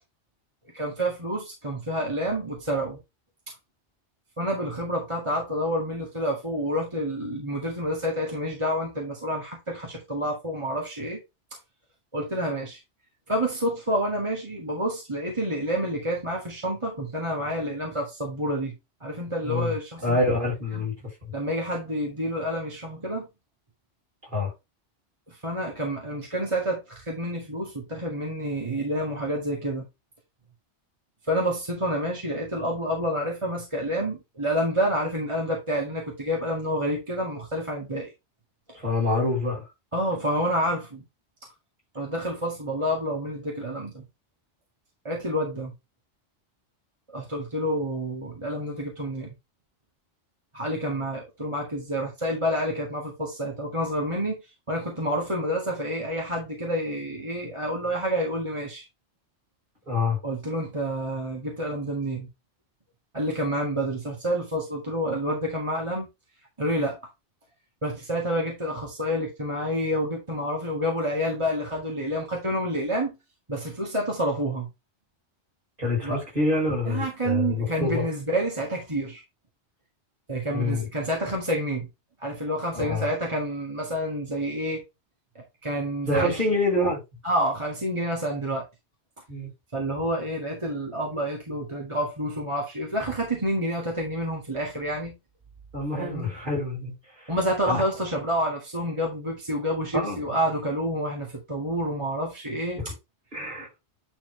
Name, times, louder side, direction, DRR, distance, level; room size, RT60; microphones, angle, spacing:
voice 1, 0.7-3.0 4.4-11.2 12.1-12.8 13.3-18.7 19.0-20.2 20.7-20.9 21.3-23.3 25.3-29.8 31.3-38.1 39.9-41.0 42.0-44.1 45.0-45.7 47.1-49.3 50.5-54.4 54.7-58.8 60.2-62.3 63.1-66.1 66.6-67.0 67.8-73.2 73.5-74.7 76.0-76.2 76.9-79.2 80.3-81.9 82.2-84.8 85.4-86.4 87.2-88.6 89.7-95.1 95.9-96.3 97.3-102.8, equal, 25° right, 2.1 m, -28 dB
voice 2, 19.4-19.7 20.0-20.9 24.3-24.5 38.7-39.6 59.9-60.2 75.8-78.0 80.5-80.8 82.7-83.0 86.1-87.0 89.3-89.5 95.7-96.9 97.2-97.3 97.6-97.8 99.9-100.3 103.3-103.7, left 2 dB, 45° right, 5.8 m, -26 dB
10.0 x 4.4 x 3.2 m
omnidirectional pair, 1.2 m